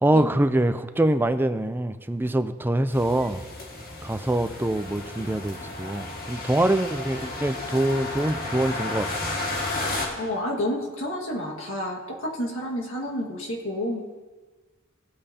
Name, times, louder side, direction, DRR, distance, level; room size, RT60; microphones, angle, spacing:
voice 1, 0.0-3.4 4.0-9.3, right 1 dB, 10° right, 9 dB, 0.4 m, -24 dB
sound 1, 2.9-10.1, left 2 dB, 45° left, 1.9 m, -33 dB
voice 2, 10.1-14.0, left 1 dB, 65° left, -2 dB, 1.8 m, -30 dB
16.5 x 8.6 x 2.8 m, 1.3 s
head